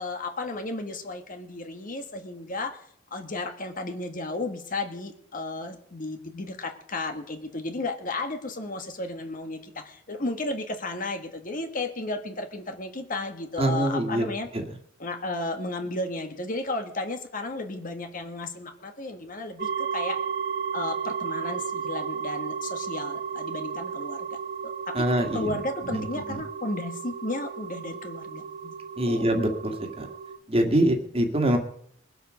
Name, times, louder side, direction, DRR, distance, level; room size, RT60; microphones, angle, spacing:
voice 1, 0.0-2.8 3.1-14.5 15.0-20.2 20.7-24.3 25.0-25.1 25.3-28.7 29.0-29.3, left 2 dB, 45° left, 5 dB, 1.6 m, -33 dB
voice 2, 13.6-14.3 14.5-14.6 24.9-25.6 25.9-26.0 26.3-26.4 29.0-30.1 30.5-31.6, right 1 dB, 30° right, 4 dB, 2.0 m, -24 dB
sound 1, 19.6-30.4, right 7 dB, 50° right, 1.4 m, -34 dB
21.0 x 8.0 x 6.4 m, 0.66 s
head